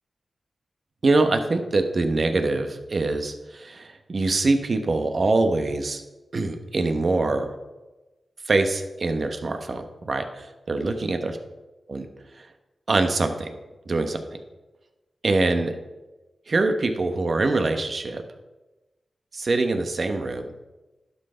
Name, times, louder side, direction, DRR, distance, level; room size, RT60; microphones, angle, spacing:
voice 1, 1.0-6.0 6.3-7.5 8.4-11.3 11.9-12.1 12.3-12.5 12.9-13.6 13.9-14.4 15.2-15.8 16.5-18.2 19.3-20.5, right 3 dB, 60° right, 6 dB, 1.1 m, -24 dB
11.5 x 5.6 x 4.4 m, 1.1 s
cardioid pair, 40°, 0 cm